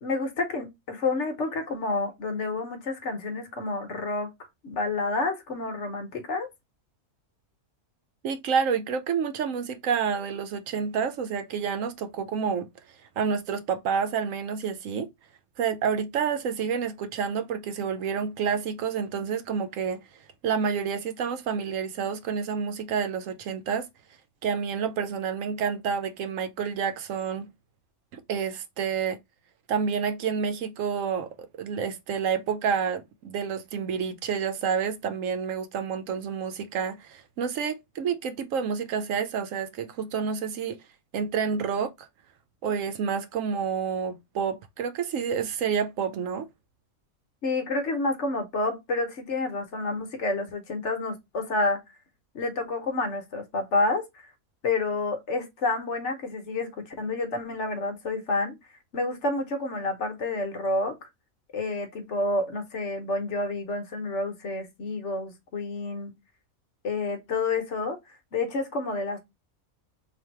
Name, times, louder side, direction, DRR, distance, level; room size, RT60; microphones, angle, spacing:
voice 1, 0.0-4.3 4.6-6.5 47.4-51.8 52.3-54.3 54.6-56.7 57.0-58.5 58.9-61.1 61.5-66.1 66.8-68.0 68.3-69.2, left 2 dB, 60° left, 1.1 m, -29 dB
voice 2, 8.2-12.7 13.2-15.1 15.6-20.0 20.4-23.9 24.4-27.5 28.1-29.2 29.7-40.8 41.1-42.1 42.6-46.5, right 6 dB, 70° right, 0.9 m, -29 dB
3.3 x 2.6 x 4.3 m
omnidirectional pair, 1.5 m